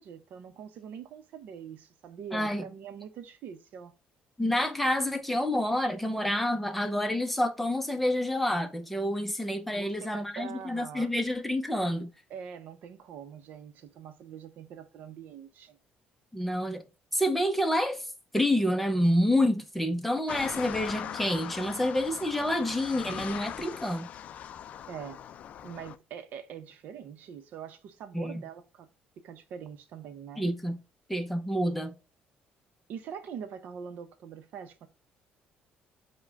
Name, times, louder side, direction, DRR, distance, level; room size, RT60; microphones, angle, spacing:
voice 1, 0.0-3.9 9.7-11.1 12.3-15.8 24.9-25.2 25.6-28.9 29.2-30.4 32.9-34.9, right 7 dB, 65° right, 0.7 m, -43 dB
voice 2, 2.3-2.6 4.4-12.1 16.3-16.8 17.1-18.1 18.3-24.1 28.1-28.4 30.4-30.8 31.1-31.9, left 1 dB, 5° left, 0.6 m, -28 dB
sound 1, 20.3-26.0, left 9 dB, 50° left, 0.3 m, -40 dB
4.8 x 2.2 x 4.5 m
cardioid pair, 145°, 3 cm